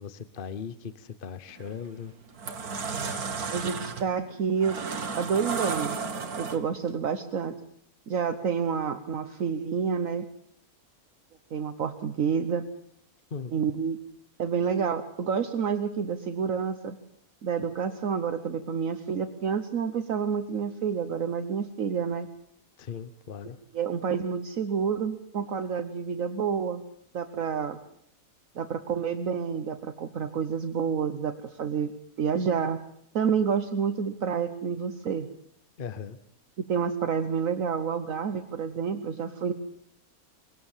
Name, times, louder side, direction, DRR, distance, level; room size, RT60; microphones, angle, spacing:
voice 1, 0.0-2.1 13.3-13.5 22.8-23.6 35.8-36.2, left 6 dB, 40° left, 14 dB, 1.0 m, -38 dB
sound 1, 1.5-1.7 2.2-6.9, right 5 dB, 85° right, 2.1 m, -33 dB
voice 2, 3.5-4.8 5.2-6.0 6.4-7.5 8.1-10.3 11.5-12.6 13.5-14.0 14.4-17.0 17.4-22.3 23.7-26.8 27.1-27.8 28.5-31.9 32.2-32.8 33.1-35.3 36.6-39.5, right 6 dB, 65° right, 9 dB, 1.4 m, -29 dB
21.5 x 18.0 x 7.3 m, 0.67 s
omnidirectional pair, 1.5 m